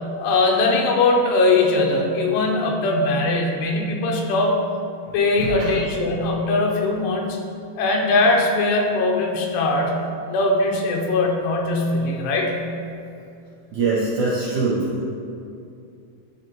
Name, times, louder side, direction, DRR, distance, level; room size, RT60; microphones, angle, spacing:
voice 1, 0.2-4.6 5.1-7.4 7.8-9.9 10.3-12.6, left 2 dB, 90° left, 0 dB, 2.8 m, -20 dB
voice 2, 5.4-5.7 13.7-14.8, right 3 dB, 80° right, -8 dB, 1.7 m, -23 dB
10.5 x 4.1 x 2.9 m, 2.5 s
omnidirectional pair, 4.6 m